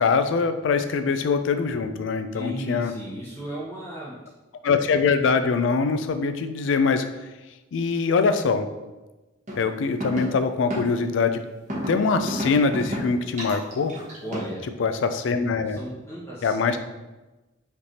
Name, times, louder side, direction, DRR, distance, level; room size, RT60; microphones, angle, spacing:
voice 1, 0.0-2.9 4.6-7.1 7.7-8.7 9.6-11.4 11.9-13.9 14.8-15.8 16.4-16.8, left 5 dB, 80° left, 9 dB, 0.4 m, -23 dB
voice 2, 2.3-4.1 14.2-14.6 15.7-16.8, right 1 dB, 15° left, -9 dB, 0.8 m, -35 dB
sound 1, 9.5-9.6 10.0-10.2 10.7-10.8 11.7-11.9 12.3-13.0 13.4-14.5, equal, 40° right, 1.1 m, -30 dB
5.0 x 3.2 x 2.8 m, 1.1 s
head